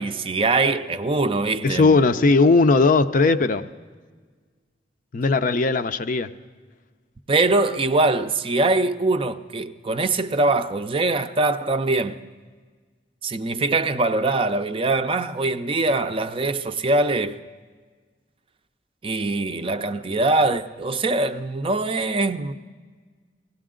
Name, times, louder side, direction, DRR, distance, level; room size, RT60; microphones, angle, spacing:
voice 1, 0.0-2.1 7.3-12.2 13.2-17.4 19.0-22.5, right 2 dB, 30° right, 0.5 m, -23 dB
voice 2, 1.6-3.7 5.1-6.3, left 3 dB, 50° left, 0.5 m, -18 dB
19.0 x 16.5 x 3.8 m
head